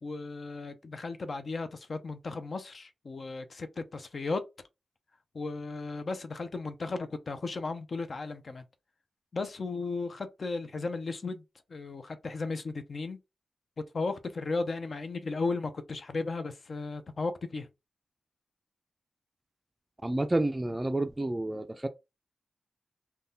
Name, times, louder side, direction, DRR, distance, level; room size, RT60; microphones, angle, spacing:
voice 1, 0.0-4.4 5.3-8.6 9.3-11.4 11.7-13.2 13.8-17.7, left 3 dB, 55° left, 0.5 m, -35 dB
voice 2, 20.0-21.9, right 1 dB, 20° right, 0.3 m, -29 dB
2.6 x 2.2 x 3.6 m
wide cardioid pair, 95°, 0 cm